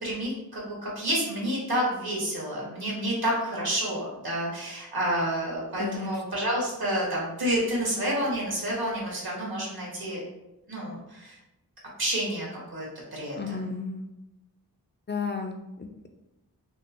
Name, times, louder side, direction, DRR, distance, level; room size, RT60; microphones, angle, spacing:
voice 1, 0.0-10.2 10.7-11.4 12.0-12.5 12.7-12.9 13.1-13.5, right 1 dB, 75° right, -4 dB, 1.4 m, -29 dB
voice 2, 5.8-6.2 13.4-14.0 15.1-16.1, left 4 dB, 30° left, 5 dB, 0.4 m, -33 dB
3.6 x 2.5 x 2.5 m, 0.93 s
cardioid pair, 40°, 37 cm